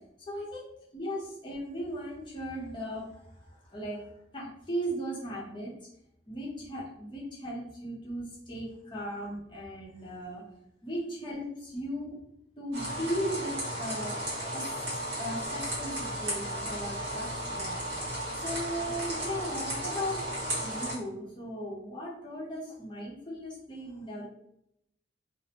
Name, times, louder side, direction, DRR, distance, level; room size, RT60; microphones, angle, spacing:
voice 1, 0.3-0.7 0.9-4.1 4.3-5.7 6.3-10.4 10.8-12.2 12.6-14.2 14.5-17.8 18.1-20.2 20.6-24.2, equal, 25° left, -5 dB, 0.7 m, -37 dB
sound 1, 12.7-20.9, right 1 dB, 75° right, 1.2 m, -34 dB
2.4 x 2.1 x 2.8 m, 0.78 s
head